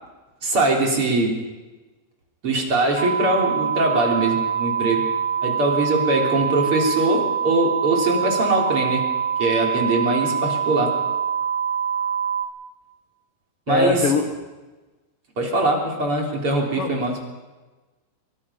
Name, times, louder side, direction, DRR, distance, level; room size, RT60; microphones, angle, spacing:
voice 1, 0.4-1.3 2.4-5.0 5.4-9.0 9.4-10.9 13.7-14.0 15.4-17.2, right 2 dB, 35° right, 0 dB, 4.0 m, -22 dB
sound 1, 2.9-12.4, right 8 dB, 35° left, 1.8 m, -24 dB
voice 2, 13.7-14.2 16.8-17.0, left 3 dB, 55° left, 4 dB, 1.7 m, -21 dB
24.5 x 22.5 x 5.6 m, 1.2 s
omnidirectional pair, 4.5 m